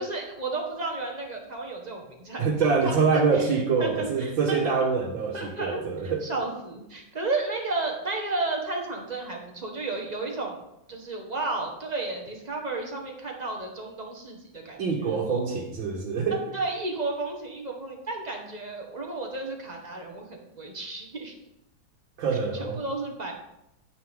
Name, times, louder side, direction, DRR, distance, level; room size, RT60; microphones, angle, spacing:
voice 1, 0.0-2.5 2.8-3.5 3.8-4.7 5.3-10.6 10.9-15.4 16.5-21.3 22.6-23.3, right 3 dB, 20° right, 0 dB, 1.7 m, -33 dB
voice 2, 2.4-6.3 14.8-16.4 22.2-22.8, right 5 dB, 85° right, -2 dB, 2.1 m, -25 dB
11.0 x 9.2 x 3.8 m, 0.85 s
omnidirectional pair, 2.0 m